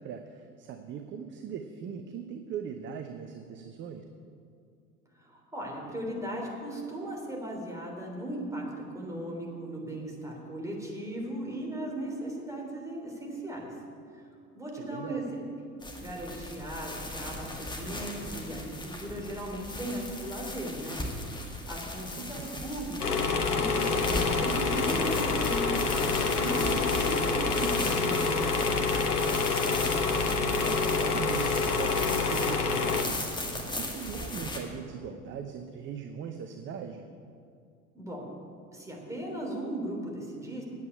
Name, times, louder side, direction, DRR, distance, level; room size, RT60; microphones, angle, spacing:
voice 1, 0.0-4.0 14.8-15.3 22.1-22.7 30.1-37.1, right 7 dB, 25° right, 7 dB, 0.7 m, -40 dB
voice 2, 5.2-8.6 8.9-13.7 14.5-15.4 16.0-21.0 21.7-25.9 26.4-28.8 37.9-38.2 38.7-40.6, right 1 dB, 5° right, -2 dB, 3.3 m, -37 dB
sound 1, 15.8-34.6, left 1 dB, 10° left, 1.7 m, -37 dB
sound 2, 23.0-33.0, left 4 dB, 75° left, 1.1 m, -27 dB
8.7 x 8.4 x 8.5 m, 2.4 s
figure-of-eight pair, 75°, 45 cm